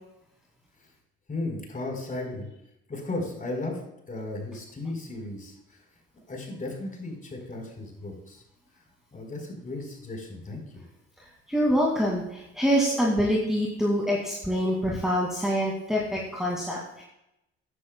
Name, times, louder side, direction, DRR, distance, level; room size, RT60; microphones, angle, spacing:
voice 1, 1.3-2.5 2.9-3.8 4.1-5.8 6.3-8.4 9.1-10.8, left 2 dB, 25° left, 1 dB, 4.1 m, -35 dB
voice 2, 11.5-17.0, equal, ahead, -4 dB, 2.2 m, -25 dB
15.0 x 9.7 x 2.2 m, 0.85 s
hypercardioid pair, 60°, 30 cm